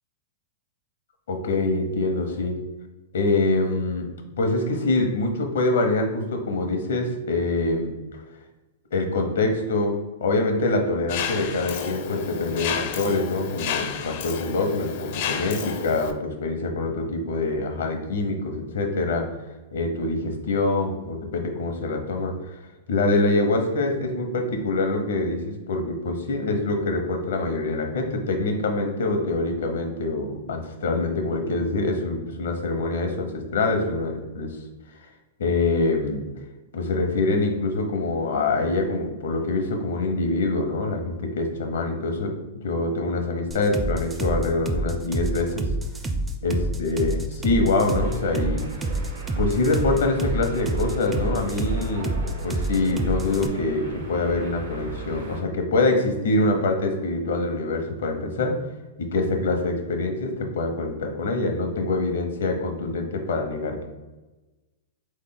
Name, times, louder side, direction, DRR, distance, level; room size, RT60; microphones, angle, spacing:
voice 1, 1.3-2.6 3.1-4.1 4.4-7.9 8.9-19.3 19.7-22.6 22.9-34.6 35.4-36.2 36.7-45.7 46.4-48.6 49.4-52.1 52.4-58.6 59.0-63.9, left 2 dB, 80° left, 4 dB, 0.9 m, -25 dB
Mechanisms, 11.1-16.1, left 7 dB, 55° left, 0.5 m, -31 dB
sound 1, 43.5-53.5, right 2 dB, 10° right, 0.4 m, -27 dB
sound 2, 47.8-55.4, right 3 dB, 85° right, 1.3 m, -37 dB
3.8 x 3.2 x 3.8 m, 1.1 s
hypercardioid pair, 140°, 0 cm